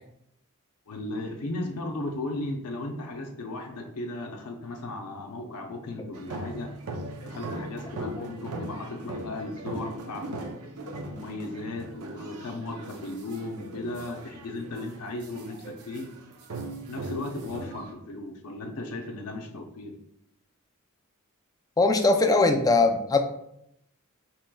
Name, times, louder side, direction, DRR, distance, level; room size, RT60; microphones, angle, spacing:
voice 1, 0.9-6.7 7.2-10.4 10.9-16.1 16.9-20.0, left 2 dB, 90° left, 2 dB, 0.5 m, -36 dB
sound 1, 6.1-17.9, right 2 dB, 90° right, 0.6 m, -39 dB
voice 2, 21.8-23.2, left 3 dB, 15° left, 5 dB, 0.3 m, -21 dB
4.6 x 3.0 x 2.2 m, 0.76 s
head